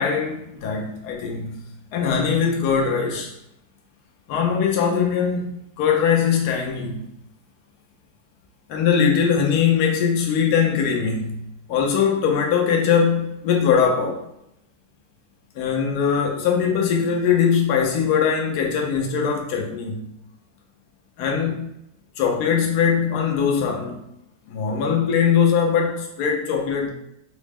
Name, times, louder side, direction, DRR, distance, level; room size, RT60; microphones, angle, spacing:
voice 1, 0.0-1.6 1.9-3.3 4.3-7.0 8.7-11.4 11.7-14.2 15.6-20.1 21.2-21.7 22.2-24.0 24.5-26.9, left 7 dB, 75° left, 1 dB, 1.1 m, -21 dB
3.8 x 2.1 x 3.4 m, 0.78 s
omnidirectional pair, 1.7 m